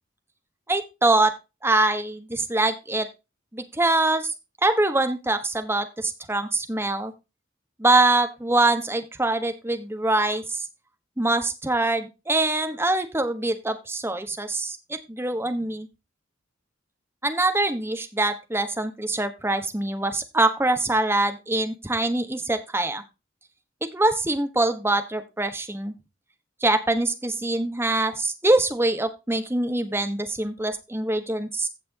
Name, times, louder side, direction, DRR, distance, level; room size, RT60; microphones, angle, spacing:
voice 1, 0.7-1.3 1.6-3.1 3.5-4.3 4.6-7.1 7.8-10.7 11.2-15.9 17.2-23.0 23.9-25.9 26.6-31.7, right 2 dB, 10° right, 8 dB, 1.3 m, -24 dB
15.5 x 6.0 x 2.9 m, 0.26 s
head